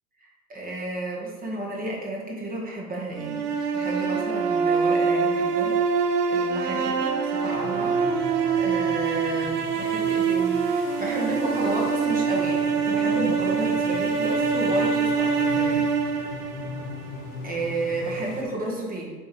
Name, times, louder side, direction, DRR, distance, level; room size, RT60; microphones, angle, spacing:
voice 1, 0.2-5.7 6.3-15.9 17.4-19.1, right 2 dB, 20° right, -2 dB, 1.7 m, -32 dB
sound 1, 3.2-17.3, right 5 dB, 90° right, 0.8 m, -24 dB
sound 2, 7.5-18.4, left 4 dB, 65° left, 1.1 m, -41 dB
8.2 x 3.6 x 3.3 m, 1.4 s
hypercardioid pair, 105°, 46 cm